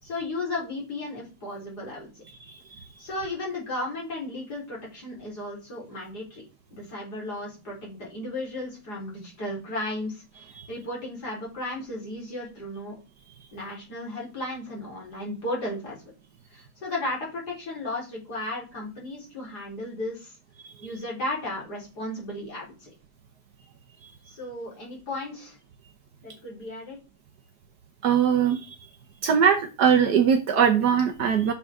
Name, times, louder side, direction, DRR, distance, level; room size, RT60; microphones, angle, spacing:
voice 1, 0.0-2.1 3.0-6.4 6.7-12.9 13.5-16.0 16.5-20.4 20.8-22.9 24.3-25.6 26.2-27.0, left 2 dB, 65° left, -4 dB, 4.9 m, -34 dB
voice 2, 28.0-28.8 29.2-31.5, right 7 dB, 70° right, 5 dB, 1.4 m, -21 dB
9.7 x 6.6 x 3.7 m, 0.32 s
omnidirectional pair, 1.8 m